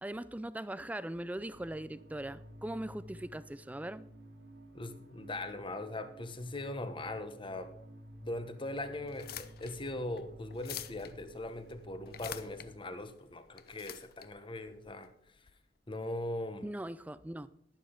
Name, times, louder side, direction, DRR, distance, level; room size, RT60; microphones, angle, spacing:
voice 1, 0.0-4.0 16.6-17.5, right 1 dB, 10° right, 0.4 m, -40 dB
sound 1, 1.5-12.7, equal, 85° right, 3.1 m, -53 dB
voice 2, 4.7-7.7 8.2-15.5 15.9-16.7, left 1 dB, 30° left, 1.1 m, -40 dB
sound 2, 9.0-15.5, left 10 dB, 55° left, 0.6 m, -48 dB
12.0 x 10.5 x 3.8 m
head